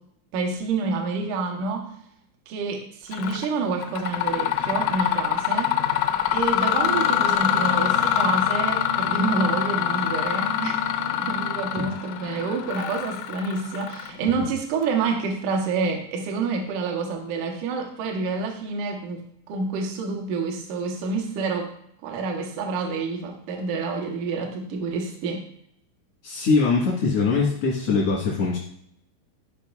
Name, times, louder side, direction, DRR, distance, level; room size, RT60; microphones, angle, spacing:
voice 1, 0.3-1.9 2.5-5.8 6.3-19.2 19.5-21.7 22.0-25.4, right 4 dB, 85° right, 2 dB, 1.8 m, -28 dB
Mechanisms, 3.1-3.5 3.8-14.4, left 10 dB, 90° left, 3.0 m, -24 dB
voice 2, 26.2-28.6, left 4 dB, 75° left, -4 dB, 1.4 m, -22 dB
13.0 x 5.2 x 2.4 m, 0.72 s
omnidirectional pair, 5.3 m